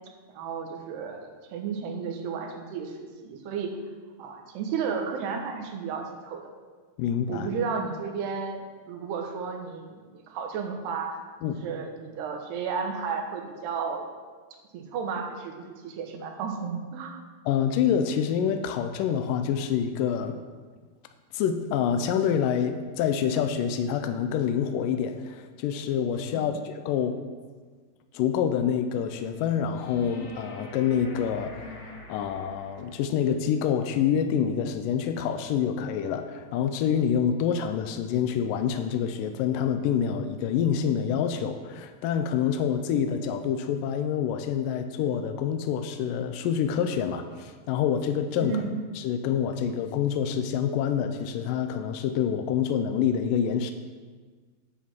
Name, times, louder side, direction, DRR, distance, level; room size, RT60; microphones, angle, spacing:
voice 1, 0.3-3.7 4.2-6.4 7.3-11.2 11.6-14.1 14.7-17.1 26.3-26.6 48.4-48.7, right 6 dB, 85° right, 3 dB, 3.3 m, -33 dB
voice 2, 7.0-7.5 11.4-11.6 17.5-20.4 21.3-27.2 28.1-48.6 49.0-53.7, left 8 dB, 85° left, 7 dB, 1.9 m, -27 dB
sound 1, 29.7-33.1 35.7-35.8, left 1 dB, 65° left, 4.7 m, -44 dB
10.5 x 7.2 x 6.1 m, 1.4 s
omnidirectional pair, 4.6 m